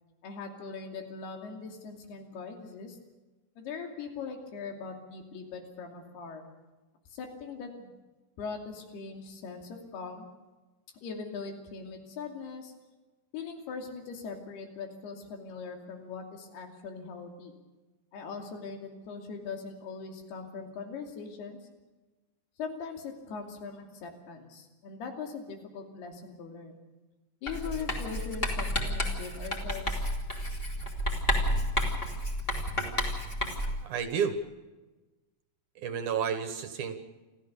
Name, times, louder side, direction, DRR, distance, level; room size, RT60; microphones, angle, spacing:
voice 1, 0.2-3.0 3.6-6.4 7.1-7.9 8.4-10.3 11.0-12.7 13.3-17.5 18.1-21.6 22.6-26.8 27.4-30.1, left 5 dB, 85° left, 3 dB, 4.7 m, -41 dB
Writing, 27.5-33.9, equal, 15° left, 2.4 m, -31 dB
voice 2, 33.8-34.4 35.8-37.0, right 7 dB, 65° right, 9 dB, 2.4 m, -31 dB
28.5 x 14.0 x 6.8 m, 1.2 s
omnidirectional pair, 4.5 m